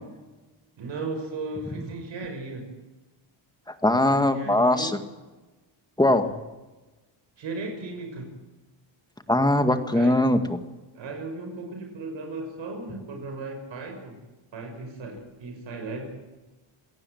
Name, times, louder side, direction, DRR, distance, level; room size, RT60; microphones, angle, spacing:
voice 1, 0.8-2.7 4.0-5.0 6.1-6.3 7.4-8.3 9.9-10.2 10.9-14.1 14.5-16.2, right 3 dB, 65° right, 4 dB, 6.0 m, -36 dB
voice 2, 3.8-5.0 6.0-6.2 9.3-10.6, left 1 dB, 10° left, 8 dB, 1.9 m, -21 dB
27.5 x 18.0 x 7.9 m, 1.2 s
cardioid pair, 140°, 48 cm